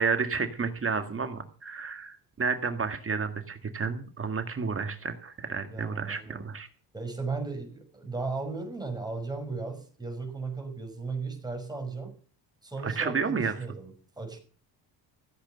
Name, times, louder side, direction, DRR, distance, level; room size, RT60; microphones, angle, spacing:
voice 1, 0.0-6.7 12.8-13.5, right 5 dB, 30° right, 8 dB, 1.8 m, -31 dB
voice 2, 5.7-6.5 6.9-12.1 12.6-13.9 14.2-14.4, right 3 dB, 10° right, 4 dB, 5.3 m, -36 dB
15.0 x 8.1 x 6.8 m, 0.42 s
cardioid pair, 85°, 42 cm